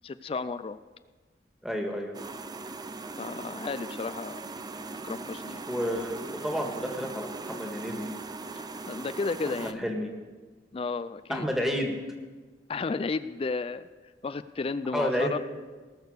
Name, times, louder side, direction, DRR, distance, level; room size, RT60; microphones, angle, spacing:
voice 1, 0.0-0.8 3.2-4.4 5.0-5.7 8.5-9.8 10.7-11.5 12.7-13.9 14.2-15.4, left 4 dB, 30° left, 13 dB, 0.3 m, -33 dB
voice 2, 1.6-2.1 5.7-8.1 9.6-10.1 11.3-11.9 14.9-15.4, equal, ahead, 1 dB, 1.8 m, -30 dB
sound 1, 2.1-9.7, right 3 dB, 20° right, 0.5 m, -40 dB
19.0 x 6.6 x 6.5 m, 1.4 s
head